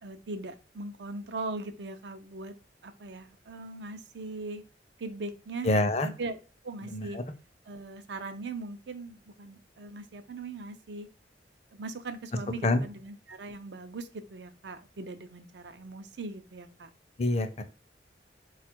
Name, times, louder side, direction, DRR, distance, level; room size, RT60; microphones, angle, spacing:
voice 1, 0.0-2.5 2.8-4.6 5.0-5.7 6.0-6.4 6.6-7.2 7.7-11.1 11.7-16.9, right 3 dB, 80° right, 10 dB, 0.5 m, -40 dB
voice 2, 5.7-6.1 6.9-7.1 12.6-12.8 17.2-17.6, left 2 dB, 35° left, 9 dB, 0.5 m, -25 dB
4.1 x 2.4 x 4.4 m, 0.35 s
head